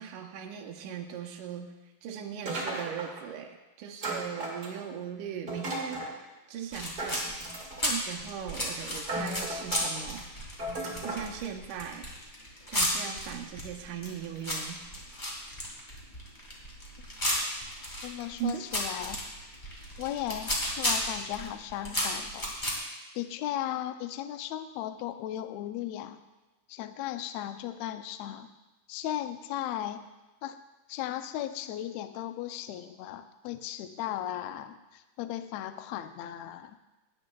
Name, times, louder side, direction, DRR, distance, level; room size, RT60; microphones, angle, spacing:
voice 1, 0.0-1.7 2.0-7.3 7.8-10.2 11.0-12.1 12.7-14.8 18.3-18.6, right 8 dB, 75° right, 2 dB, 2.3 m, -39 dB
sound 1, 2.5-3.3 4.0-5.0 5.5-6.1 7.0-7.9 8.6-8.7 9.0-9.9 10.6-11.3, right 1 dB, 35° right, 2.4 m, -35 dB
sound 2, 6.7-22.8, equal, 20° left, 1.7 m, -34 dB
voice 2, 18.0-19.2 20.0-22.5 23.1-26.2 26.7-28.5 28.9-30.0 30.4-30.6 30.9-36.7, left 12 dB, 85° left, 9 dB, 1.5 m, -36 dB
18.0 x 9.6 x 2.3 m, 1.1 s
omnidirectional pair, 3.7 m